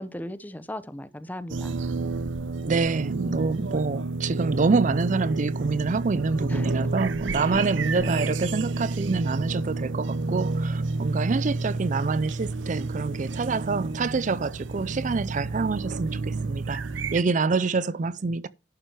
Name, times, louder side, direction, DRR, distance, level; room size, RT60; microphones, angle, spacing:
voice 1, 0.0-1.8 6.5-6.9 7.5-7.7 8.0-8.3, left 1 dB, 10° left, 0.7 m, -37 dB
sound 1, 1.5-17.2, right 3 dB, 90° right, 0.7 m, -30 dB
voice 2, 2.6-18.5, right 4 dB, 45° right, 0.4 m, -26 dB
11.5 x 6.0 x 4.9 m
head